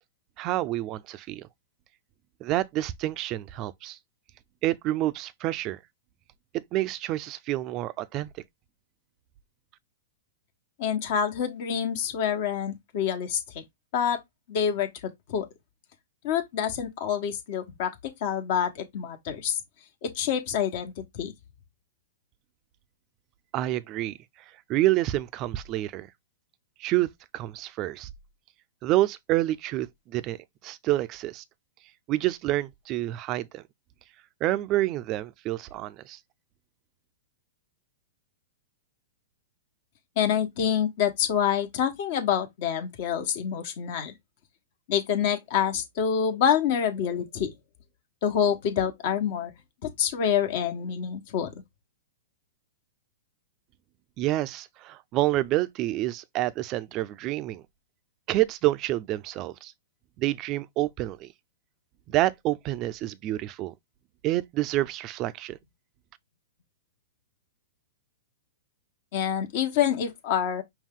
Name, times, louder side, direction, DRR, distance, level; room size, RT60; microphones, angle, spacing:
voice 1, 0.4-1.5 2.4-4.0 4.6-5.8 6.7-8.3 23.5-24.2 24.7-26.1 26.8-27.1 27.3-28.1 28.8-30.4 30.6-31.4 32.1-33.6 34.4-36.2 54.2-57.6 58.3-59.7 60.2-61.3 62.1-63.7 64.2-65.6, right 15 dB, 35° right, 0.5 m, -28 dB
voice 2, 10.8-13.6 13.9-14.2 14.5-15.5 16.2-19.6 20.0-21.3 40.2-44.1 44.9-47.5 48.2-49.5 49.8-51.5 69.1-70.6, left 8 dB, 55° left, 1.2 m, -27 dB
5.5 x 2.3 x 3.7 m
hypercardioid pair, 125°, 0 cm